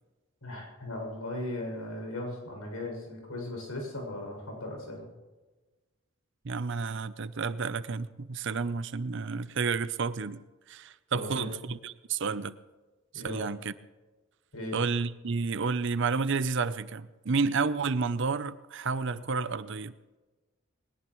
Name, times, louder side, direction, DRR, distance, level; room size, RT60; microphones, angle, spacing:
voice 1, 0.4-5.1 11.1-11.6 13.1-13.5 14.5-14.8, left 1 dB, 85° left, 6.6 m, -37 dB
voice 2, 6.4-10.4 10.7-12.5 13.1-13.7 14.7-19.9, right 4 dB, 55° right, 0.6 m, -31 dB
21.0 x 19.0 x 3.1 m
head